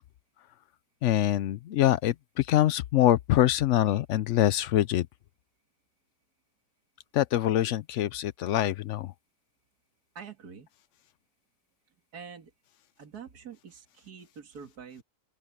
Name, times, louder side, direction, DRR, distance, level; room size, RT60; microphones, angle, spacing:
voice 1, 1.0-5.1 7.1-9.1, left 13 dB, 75° left, 0.6 m, -24 dB
voice 2, 10.1-10.7 12.1-12.5 13.0-15.0, right 7 dB, 65° right, 2.6 m, -45 dB
open air
omnidirectional pair, 1.8 m